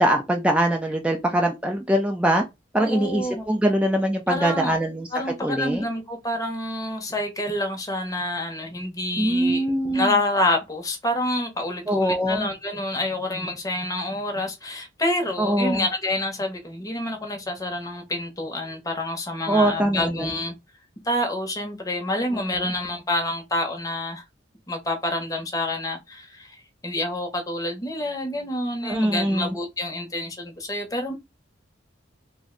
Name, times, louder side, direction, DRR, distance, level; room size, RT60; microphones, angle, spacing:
voice 1, 0.0-2.4 2.7-5.1 5.4-5.8 9.2-10.1 11.9-12.5 15.4-15.8 19.5-20.3 22.6-22.7 28.8-29.5, right 1 dB, 5° right, 0.3 m, -22 dB
voice 2, 2.8-3.5 4.3-4.8 5.1-9.7 9.9-20.5 21.0-24.2 24.7-31.1, left 1 dB, 20° left, 0.7 m, -28 dB
2.5 x 2.1 x 3.6 m
head